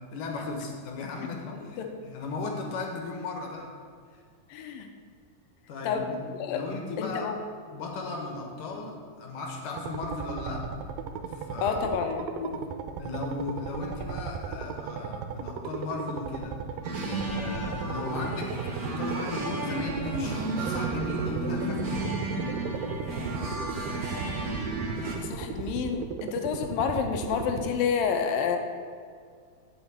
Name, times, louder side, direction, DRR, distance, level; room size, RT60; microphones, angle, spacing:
voice 1, 0.0-3.7 4.1-4.2 5.7-7.4 7.7-10.7 11.3-11.8 13.0-16.6 17.0-22.2, left 3 dB, 70° left, 2 dB, 2.7 m, -36 dB
voice 2, 4.5-4.9 5.8-6.7 7.0-7.4 11.6-12.6 25.2-28.6, left 6 dB, 85° left, 5 dB, 2.6 m, -29 dB
sound 1, 9.8-27.7, right 6 dB, 85° right, 2.3 m, -37 dB
sound 2, 16.8-25.2, right 2 dB, 60° right, 0.9 m, -32 dB
8.2 x 7.0 x 8.5 m, 2.1 s
omnidirectional pair, 4.0 m